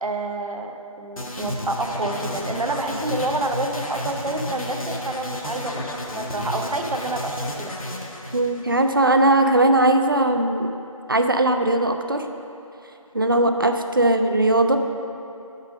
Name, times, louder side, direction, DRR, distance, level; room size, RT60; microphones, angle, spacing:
voice 1, 0.0-7.7 14.0-14.2, right 2 dB, 85° right, 4 dB, 0.8 m, -28 dB
sound 1, 1.2-9.2, left 1 dB, 75° left, 1.1 m, -32 dB
voice 2, 8.3-10.7 11.1-12.3 13.1-14.8, right 1 dB, 40° right, 6 dB, 0.4 m, -19 dB
5.5 x 5.0 x 6.1 m, 2.7 s
figure-of-eight pair, 170°, 18 cm